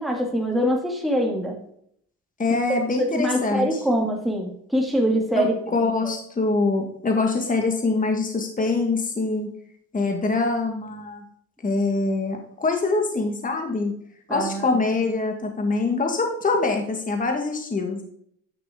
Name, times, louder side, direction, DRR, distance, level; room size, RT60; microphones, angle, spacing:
voice 1, 0.0-1.6 3.0-5.8 14.3-14.7, equal, ahead, 0 dB, 2.2 m, -24 dB
voice 2, 2.4-3.8 5.3-9.5 9.9-11.2 11.6-13.9 14.3-18.0, left 3 dB, 25° left, 3 dB, 1.6 m, -24 dB
9.9 x 5.9 x 3.6 m, 0.67 s
cardioid pair, 90°, 30 cm